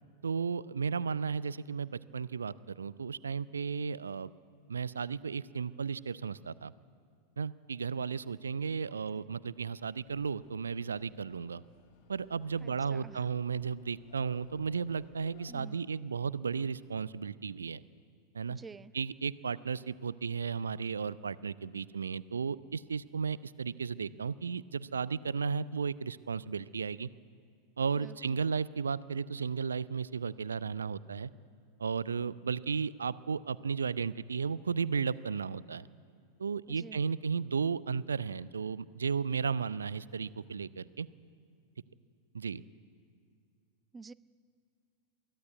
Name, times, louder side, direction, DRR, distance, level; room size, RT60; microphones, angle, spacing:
voice 1, 0.2-4.3 4.7-6.7 7.4-11.6 12.1-17.8 18.3-18.6 18.9-27.1 27.8-31.3 31.8-35.9 36.4-41.1 42.3-42.6, right 5 dB, 70° right, 19 dB, 0.5 m, -34 dB
voice 2, 8.9-9.2 12.6-13.2 15.5-15.8 18.5-18.9 27.9-28.4 36.7-37.0 43.9-44.1, right 4 dB, 15° right, 18 dB, 0.4 m, -50 dB
sound 1, 10.0-15.5, left 10 dB, 45° left, 1.8 m, -62 dB
23.0 x 15.0 x 9.5 m, 2.2 s
figure-of-eight pair, 90°, 0 cm